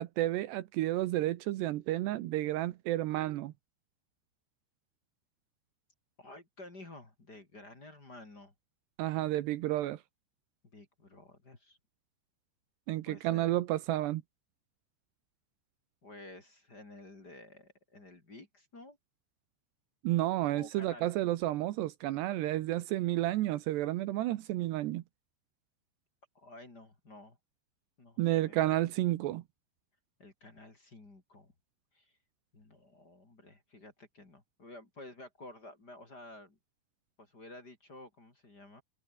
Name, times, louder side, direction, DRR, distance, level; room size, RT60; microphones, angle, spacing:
voice 1, 0.0-3.5 9.0-10.0 12.9-14.2 20.0-25.0 28.2-29.4, right 15 dB, 75° right, 3.0 m, -31 dB
voice 2, 6.2-8.5 9.0-9.2 10.7-11.8 13.1-13.5 16.0-19.0 20.5-21.1 26.4-27.4 28.0-28.6 30.2-31.5 31.9-32.1 32.5-36.6 37.2-38.8, left 2 dB, 25° left, 3.7 m, -52 dB
omnidirectional pair, 5.2 m